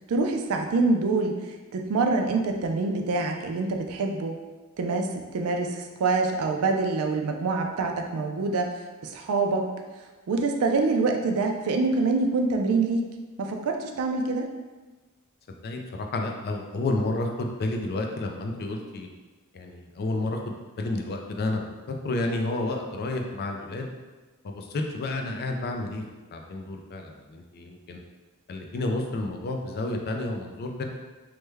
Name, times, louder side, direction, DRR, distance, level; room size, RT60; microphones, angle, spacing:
voice 1, 0.1-1.3 1.7-4.4 4.8-8.7 9.0-9.7 10.3-13.0 13.4-14.5, right 3 dB, 70° right, 3 dB, 0.4 m, -25 dB
voice 2, 15.6-19.1 19.5-21.6 21.9-23.9 24.4-26.0 26.3-28.0 28.5-30.9, left 2 dB, 45° left, 2 dB, 0.4 m, -30 dB
3.2 x 2.2 x 3.3 m, 1.2 s
head